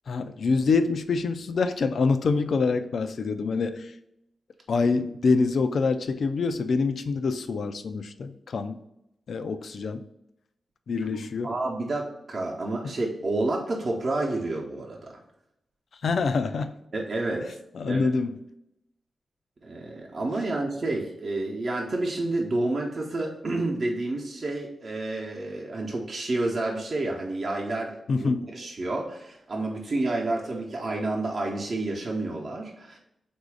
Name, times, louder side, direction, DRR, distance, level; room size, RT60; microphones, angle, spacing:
voice 1, 0.1-3.9 4.7-8.8 9.3-10.0 10.9-11.5 16.0-16.7 17.8-18.4 28.1-28.5, left 4 dB, 70° left, 10 dB, 0.4 m, -25 dB
voice 2, 11.4-15.2 16.9-17.5 17.8-18.0 19.6-33.0, right 2 dB, 50° right, -2 dB, 0.8 m, -29 dB
4.0 x 2.6 x 4.7 m, 0.82 s
cardioid pair, 70°, 0 cm